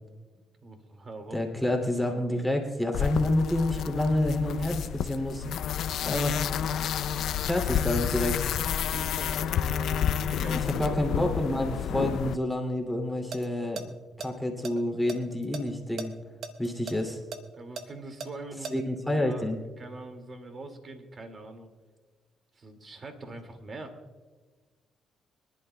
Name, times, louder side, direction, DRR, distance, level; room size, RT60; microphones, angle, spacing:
voice 1, 0.6-1.4 8.9-10.8 17.6-18.8 19.1-21.7 22.5-24.0, right 2 dB, 40° right, 6 dB, 2.1 m, -42 dB
voice 2, 1.3-5.5 6.0-6.4 6.8-6.9 7.4-8.4 10.4-13.8 14.2-16.1 16.6-17.2 18.7-19.6, left 1 dB, ahead, 0 dB, 2.4 m, -28 dB
sound 1, 2.9-12.4, left 9 dB, 75° left, 0.5 m, -30 dB
sound 2, 13.1-13.5 13.8-13.9 14.2-15.6 16.0-16.1 16.4-18.7, right 5 dB, 65° right, 1.1 m, -37 dB
25.0 x 11.5 x 2.2 m, 1.4 s
cardioid pair, 90°, 0 cm